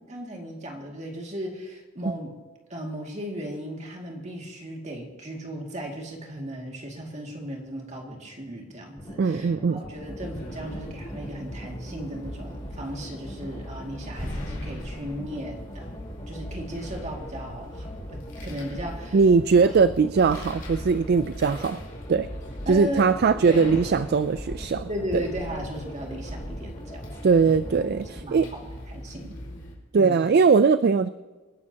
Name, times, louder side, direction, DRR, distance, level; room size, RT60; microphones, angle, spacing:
voice 1, 0.1-2.4 2.7-16.0 16.3-19.2 19.6-19.7 22.7-23.1 23.5-23.8 24.9-27.1 27.8-29.4 29.9-30.2, equal, 35° right, 0 dB, 2.3 m, -36 dB
sound 1, 9.0-28.2, equal, 25° left, 3.1 m, -42 dB
voice 2, 9.2-9.8 19.1-21.8 22.1-22.3 22.7-25.2 27.2-28.5 29.9-31.1, right 5 dB, 50° right, 13 dB, 0.4 m, -20 dB
sound 2, 10.0-29.7, equal, 45° left, 4.8 m, -40 dB
28.0 x 11.0 x 2.9 m, 1.3 s
head